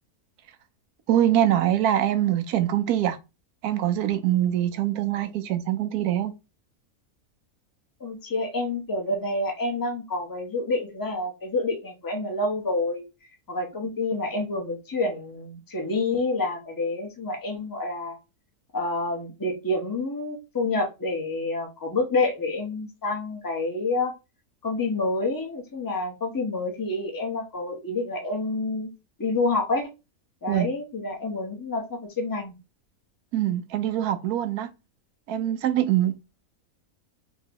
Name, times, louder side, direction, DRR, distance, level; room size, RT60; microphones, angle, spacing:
voice 1, 1.1-3.2 3.6-6.3 30.5-30.7 33.3-34.7 35.3-36.2, right 12 dB, 80° right, 1.1 m, -23 dB
voice 2, 8.0-13.0 13.5-18.2 18.7-24.1 24.6-28.9 29.2-29.9 30.4-32.5, left 2 dB, 15° left, 0.8 m, -28 dB
3.8 x 3.1 x 2.8 m
omnidirectional pair, 1.6 m